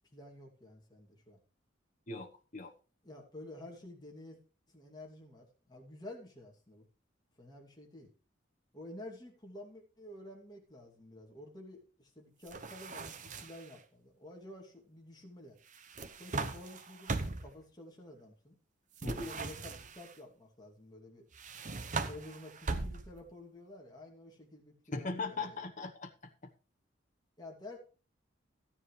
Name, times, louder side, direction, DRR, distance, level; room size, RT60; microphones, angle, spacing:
voice 1, 0.1-1.4 3.0-4.4 4.7-6.9 7.4-8.1 8.7-15.6 16.2-18.6 19.1-21.3 21.9-25.6 27.4-27.8, left 1 dB, 20° left, 0 dB, 2.5 m, -51 dB
voice 2, 2.1-2.7 19.0-19.3 24.9-26.1, left 3 dB, 40° left, 3 dB, 1.1 m, -39 dB
sound 1, 12.5-13.7 15.7-17.6 19.0-20.1 21.3-23.3, right 3 dB, 40° right, 0.9 m, -39 dB
14.0 x 9.9 x 3.2 m, 0.36 s
head